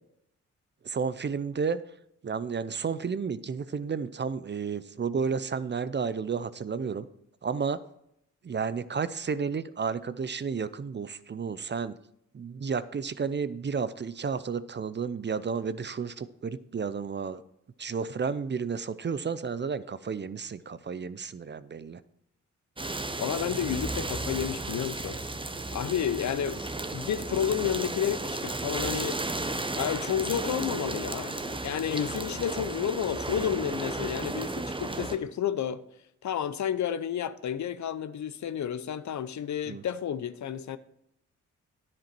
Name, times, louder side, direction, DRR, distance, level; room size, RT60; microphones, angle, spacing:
voice 1, 0.8-1.8 2.2-7.1 7.4-7.8 8.4-12.0 12.3-17.4 17.8-22.0 39.7-39.8, right 5 dB, 35° right, 0.5 m, -32 dB
sound 1, 22.8-35.2, right 2 dB, 15° right, 0.9 m, -34 dB
voice 2, 23.2-25.2 25.7-29.2 29.8-35.8 36.2-40.8, left 9 dB, 60° left, 0.7 m, -31 dB
10.0 x 7.6 x 4.5 m
supercardioid pair, 55°, 32 cm